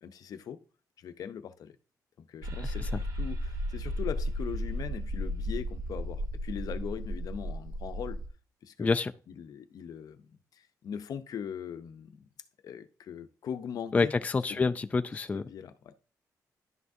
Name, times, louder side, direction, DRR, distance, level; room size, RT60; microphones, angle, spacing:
voice 1, 0.0-0.6 1.0-1.8 2.2-8.2 8.6-8.9 9.3-12.2 12.6-14.1 14.5-14.7 15.1-15.9, left 8 dB, 65° left, 0.6 m, -40 dB
sound 1, 2.4-8.3, equal, 60° right, 1.3 m, -34 dB
voice 2, 8.8-9.1 13.9-15.4, left 4 dB, 20° left, 0.3 m, -28 dB
11.0 x 5.8 x 2.6 m
cardioid pair, 105°, 7 cm